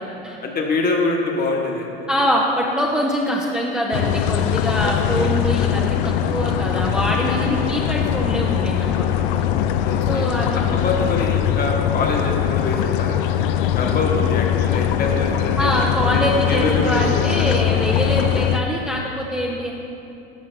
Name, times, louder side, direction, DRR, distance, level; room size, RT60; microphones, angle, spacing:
voice 1, 0.4-2.1 4.8-5.7 7.5-7.7 9.8-13.3 13.7-15.7 16.1-17.6 18.1-18.3, left 3 dB, 30° left, 1 dB, 1.3 m, -25 dB
voice 2, 2.1-8.9 9.3-9.5 10.1-10.8 15.6-19.7, equal, 5° right, -3 dB, 0.6 m, -23 dB
sound 1, 3.9-18.6, left 10 dB, 60° left, 0.5 m, -21 dB
13.5 x 5.5 x 3.3 m, 2.9 s
hypercardioid pair, 85°, 30 cm